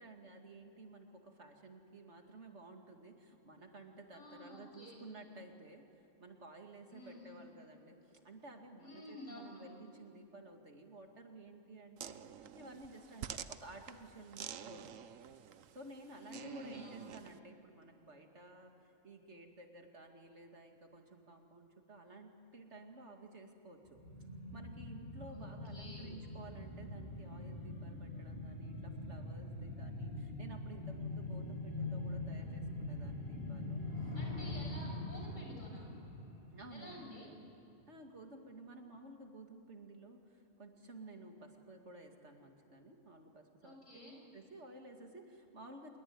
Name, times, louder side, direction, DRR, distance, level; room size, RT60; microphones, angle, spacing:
voice 1, 0.0-5.8 6.2-15.0 15.7-24.0 24.5-34.2 36.5-37.1 37.9-43.8 44.3-46.0, right 2 dB, 60° right, 3 dB, 2.6 m, -54 dB
voice 2, 4.1-5.1 6.9-7.4 8.8-9.7 16.2-17.1 25.3-26.1 34.1-35.9 36.7-37.3 43.6-44.2, equal, 80° left, -1 dB, 7.2 m, -51 dB
sound 1, 12.0-17.4, right 9 dB, 80° right, 1.2 m, -49 dB
sound 2, 23.9-37.1 37.4-37.5, left 2 dB, 50° left, 7.6 m, -43 dB
26.5 x 22.5 x 9.6 m, 2.8 s
omnidirectional pair, 1.3 m